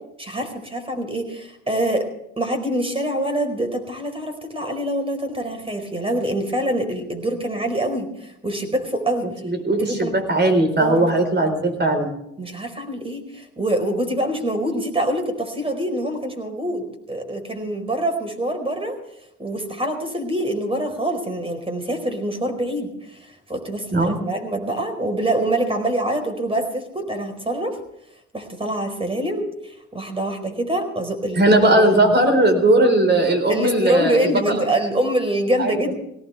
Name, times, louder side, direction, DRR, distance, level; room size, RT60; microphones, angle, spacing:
voice 1, 0.2-2.1 2.4-9.3 9.8-10.2 10.8-11.1 12.4-19.0 19.4-23.2 23.5-27.8 28.3-31.4 33.5-35.9, right 1 dB, 20° right, 6 dB, 4.6 m, -25 dB
voice 2, 9.4-12.2 23.9-24.2 31.3-34.6 35.6-35.7, right 1 dB, 35° right, 6 dB, 4.4 m, -18 dB
19.0 x 18.0 x 3.5 m, 0.78 s
cardioid pair, 90°, 30 cm